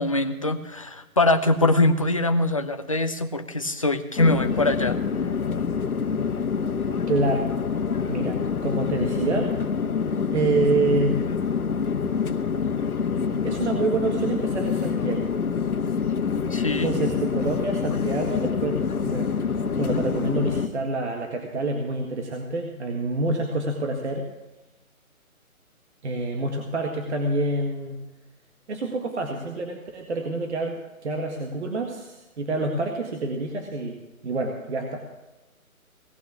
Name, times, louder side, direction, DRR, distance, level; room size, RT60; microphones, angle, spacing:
voice 1, 0.0-5.0 16.5-16.9, left 2 dB, 25° left, 7 dB, 0.6 m, -23 dB
sound 1, 4.2-20.7, left 6 dB, 90° left, 1.4 m, -26 dB
voice 2, 7.1-7.5 8.1-9.5 10.3-11.2 13.4-15.3 16.8-19.5 19.8-24.3 26.0-28.0 28.7-34.0 34.2-35.1, right 2 dB, 50° right, 3 dB, 1.9 m, -27 dB
18.0 x 6.3 x 8.3 m, 1.1 s
hypercardioid pair, 165°, 42 cm